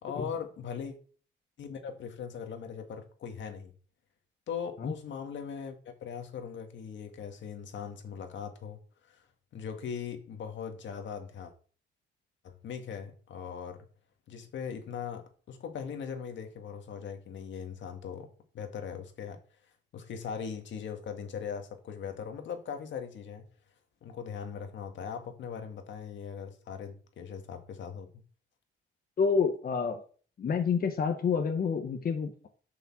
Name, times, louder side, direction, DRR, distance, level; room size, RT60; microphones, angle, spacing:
voice 1, 0.0-0.9 1.6-3.7 4.5-8.8 9.1-9.2 9.5-11.5 12.4-13.8 14.3-19.4 19.9-23.4 24.0-28.1, left 7 dB, 70° left, 1.9 m, -40 dB
voice 2, 29.2-30.0 30.4-32.5, left 6 dB, 45° left, 1.3 m, -28 dB
7.4 x 5.6 x 7.4 m
cardioid pair, 90°, 20 cm